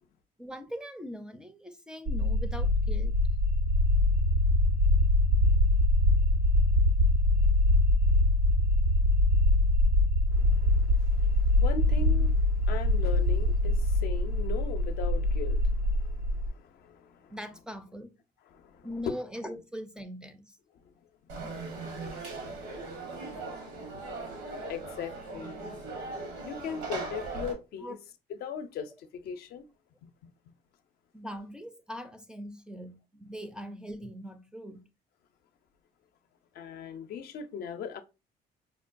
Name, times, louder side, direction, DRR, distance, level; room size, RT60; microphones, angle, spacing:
voice 1, 0.4-3.2 17.3-18.1 18.8-20.5 27.8-28.0 31.1-34.8, equal, 5° right, 0.4 m, -41 dB
sound 1, 2.1-16.5, left 1 dB, 65° right, 0.5 m, -24 dB
voice 2, 10.3-17.4 18.4-19.2 21.3-21.4 22.1-22.6 24.7-25.8 26.4-28.0 28.3-29.6 30.0-30.1 36.5-38.0, left 7 dB, 65° left, 0.5 m, -39 dB
Conversation / Crowd, 21.3-27.5, right 3 dB, 90° right, 1.1 m, -39 dB
5.1 x 2.2 x 2.5 m
cardioid pair, 110°, 17 cm